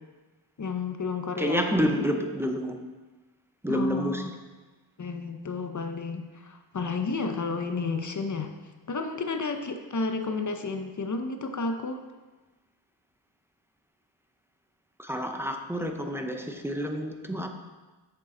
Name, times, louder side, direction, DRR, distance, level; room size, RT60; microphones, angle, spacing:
voice 1, 0.6-1.9 3.7-4.3 5.0-8.5 8.9-12.0, left 4 dB, 40° left, 7 dB, 0.7 m, -31 dB
voice 2, 1.4-2.8 3.6-4.2 15.0-17.5, equal, 5° right, 4 dB, 0.6 m, -28 dB
7.4 x 6.6 x 3.8 m, 1.3 s
wide cardioid pair, 95°, 49 cm